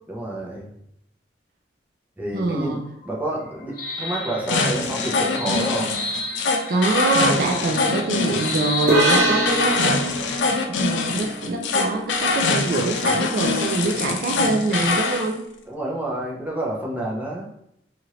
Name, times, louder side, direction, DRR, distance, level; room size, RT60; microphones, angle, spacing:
voice 1, 0.1-0.7 2.2-2.8 3.0-5.9 15.7-17.5, right 1 dB, 10° right, -4 dB, 0.6 m, -29 dB
voice 2, 2.3-2.8 6.7-10.0 10.8-15.4, right 3 dB, 55° right, 1 dB, 0.4 m, -24 dB
sound 1, 2.5-10.4, left 2 dB, 55° left, 0.8 m, -33 dB
sound 2, 4.5-15.3, left 3 dB, 90° left, 0.4 m, -24 dB
sound 3, 8.9-12.4, right 1 dB, 75° right, 0.9 m, -24 dB
2.8 x 2.5 x 3.0 m, 0.76 s
head